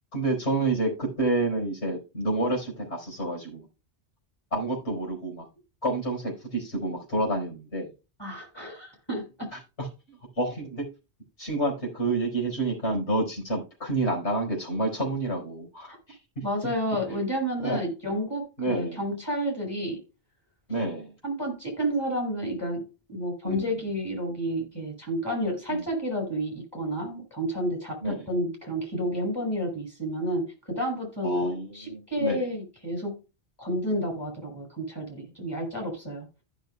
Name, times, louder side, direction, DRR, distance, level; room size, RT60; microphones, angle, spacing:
voice 1, 0.1-3.6 4.5-5.5 5.8-7.9 9.5-9.9 10.4-10.9 11.4-16.2 17.6-17.9 18.6-19.0 20.7-21.1 23.4-23.7 25.7-25.8 28.0-28.3 31.2-32.4, right 2 dB, 80° left, 5.0 m, -29 dB
voice 2, 8.2-9.5 15.9-16.0 16.4-20.0 21.2-22.8 23.1-33.2 33.6-36.3, equal, 20° left, 5.7 m, -30 dB
15.0 x 6.6 x 2.2 m
omnidirectional pair, 1.1 m